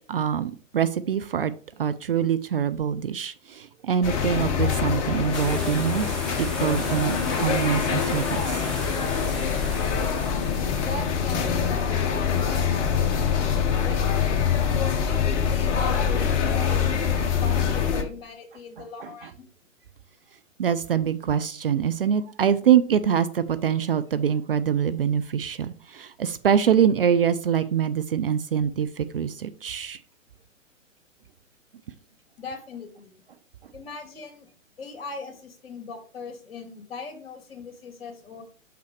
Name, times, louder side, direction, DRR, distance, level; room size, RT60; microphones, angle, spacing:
voice 1, 0.1-1.5 1.8-6.1 6.4-8.6 19.0-19.3 20.6-30.0, right 8 dB, 45° right, 12 dB, 0.5 m, -24 dB
sound 1, 4.0-18.0, left 7 dB, 25° left, 1.0 m, -24 dB
sound 2, 5.3-13.4, left 1 dB, ahead, 1.2 m, -38 dB
voice 2, 10.7-14.3 15.0-19.5 32.4-33.1 33.7-34.5 34.8-38.4, left 4 dB, 45° left, 5 dB, 2.3 m, -39 dB
7.3 x 5.8 x 3.2 m, 0.43 s
figure-of-eight pair, 125°, 40 cm